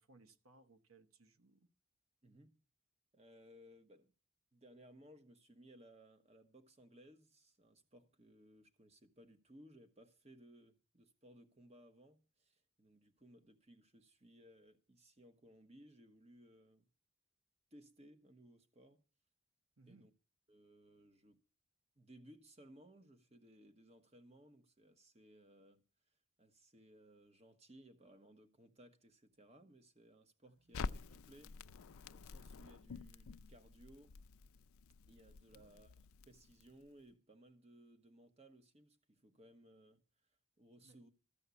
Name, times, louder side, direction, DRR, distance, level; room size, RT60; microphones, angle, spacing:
voice 1, 0.0-1.7 19.8-20.1 30.4-30.8 35.5-35.8 40.8-41.1, right 3 dB, 80° right, 1.2 m, -66 dB
voice 2, 2.2-2.5 3.1-4.1 4.5-16.9 17.7-19.0 19.9-20.1 20.5-21.4 22.0-31.6 32.1-34.2 35.1-35.9 36.3-41.1, right 1 dB, 30° right, 1.2 m, -62 dB
Crackle, 30.7-36.9, left 4 dB, 90° left, 0.5 m, -49 dB
14.0 x 5.6 x 8.3 m
head